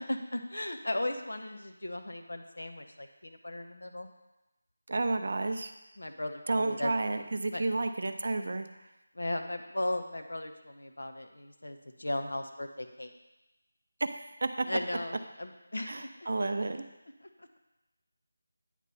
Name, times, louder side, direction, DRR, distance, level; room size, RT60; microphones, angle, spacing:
voice 1, 0.0-4.1 6.0-6.9 7.5-7.6 9.1-13.1 14.7-16.1, left 1 dB, 85° left, 6 dB, 0.8 m, -36 dB
voice 2, 4.9-5.7 6.5-8.7 14.0-14.5 15.9-16.9, right 2 dB, 55° right, 8 dB, 0.5 m, -31 dB
9.1 x 3.0 x 5.4 m, 0.99 s
figure-of-eight pair, 170°, 0 cm